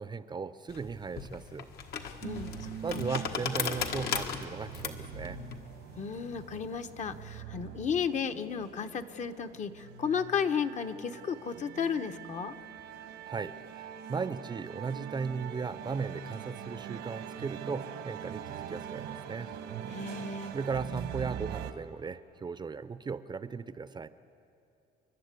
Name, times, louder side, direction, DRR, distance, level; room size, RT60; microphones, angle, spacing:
voice 1, 0.0-1.7 2.8-5.4 13.2-19.5 20.5-24.1, right 5 dB, 25° right, 14 dB, 0.6 m, -37 dB
sound 1, 0.7-7.4, left 7 dB, 70° left, 1.6 m, -37 dB
voice 2, 2.2-3.0 6.0-12.5 19.9-20.5, left 7 dB, 45° left, 8 dB, 1.0 m, -34 dB
sound 2, 2.2-21.7, right 9 dB, 85° right, 1.4 m, -43 dB
30.0 x 11.5 x 8.3 m, 2.6 s
cardioid pair, 110°, 17 cm